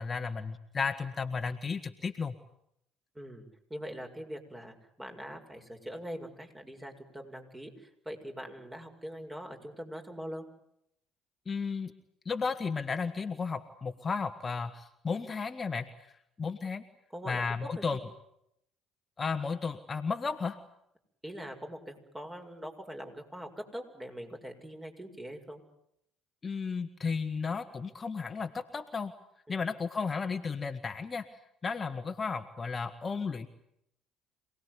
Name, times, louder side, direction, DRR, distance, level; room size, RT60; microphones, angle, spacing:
voice 1, 0.0-2.3 11.4-11.9 12.2-16.8 17.3-18.0 19.2-20.6 26.4-29.1 29.5-31.3 31.6-33.5, left 5 dB, 30° left, 8 dB, 1.6 m, -34 dB
voice 2, 3.1-10.4 17.1-18.0 21.2-25.6 29.5-29.6, equal, 15° right, 4 dB, 6.8 m, -43 dB
27.5 x 19.5 x 9.8 m, 0.76 s
hypercardioid pair, 60°, 0 cm